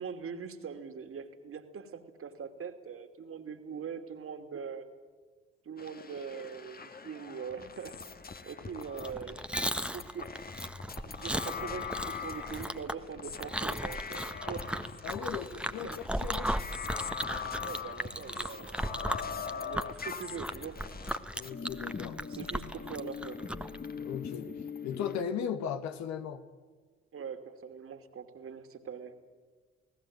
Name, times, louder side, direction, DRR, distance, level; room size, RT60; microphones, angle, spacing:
voice 1, 0.0-4.9 5.6-8.0 8.4-9.4 9.9-10.3 11.1-14.7 15.6-16.0 17.6-19.3 19.6-20.8 22.3-23.4 27.1-29.1, right 6 dB, 45° right, 2.9 m, -42 dB
sound 1, 5.8-25.2, left 6 dB, 30° left, 1.8 m, -42 dB
Chewing mastication, 8.9-23.8, right 1 dB, 5° right, 1.5 m, -36 dB
voice 2, 15.0-15.9 16.2-16.5 21.3-22.2 23.9-24.5 24.8-26.4, left 8 dB, 65° left, 1.7 m, -37 dB
29.0 x 18.5 x 9.0 m
hypercardioid pair, 50°, 31 cm